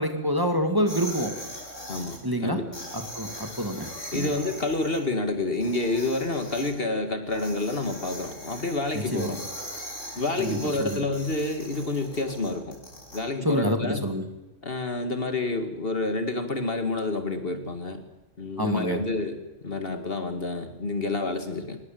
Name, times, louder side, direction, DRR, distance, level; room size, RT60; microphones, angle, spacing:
voice 1, 0.0-1.4 2.2-2.6 2.9-4.3 9.1-9.4 10.4-11.0 13.4-14.2 18.6-19.0, equal, 15° right, 5 dB, 2.5 m, -27 dB
sound 1, 0.9-2.2 2.7-5.0 5.5-6.7 7.3-13.2, equal, 85° left, 8.0 m, -40 dB
voice 2, 1.9-2.7 4.1-9.4 10.2-12.8 13.1-14.1 14.6-18.0 18.4-21.8, left 2 dB, 50° left, 7 dB, 2.2 m, -29 dB
25.0 x 19.5 x 7.8 m, 1.0 s
omnidirectional pair, 1.3 m